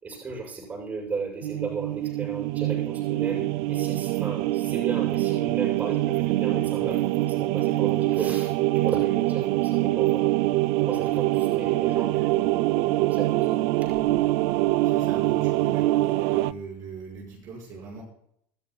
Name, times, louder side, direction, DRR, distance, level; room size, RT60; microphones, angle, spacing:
voice 1, 0.0-10.3 10.8-13.6, right 4 dB, 20° right, -2 dB, 6.5 m, -35 dB
sound 1, 1.4-16.5, right 17 dB, 70° right, 0.4 m, -24 dB
voice 2, 14.8-18.0, right 4 dB, 50° right, -1 dB, 5.7 m, -41 dB
25.0 x 13.5 x 2.3 m, 0.69 s
cardioid pair, 150°, 7 cm